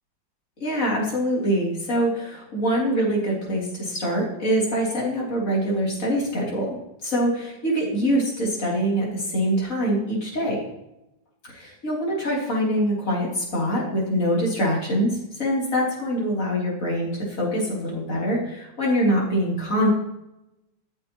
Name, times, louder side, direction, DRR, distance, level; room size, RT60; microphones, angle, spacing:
voice 1, 0.6-6.8 7.0-10.6 11.5-15.1 15.4-19.9, equal, 45° left, -4 dB, 3.6 m, -24 dB
13.5 x 7.0 x 3.0 m, 0.88 s
omnidirectional pair, 2.0 m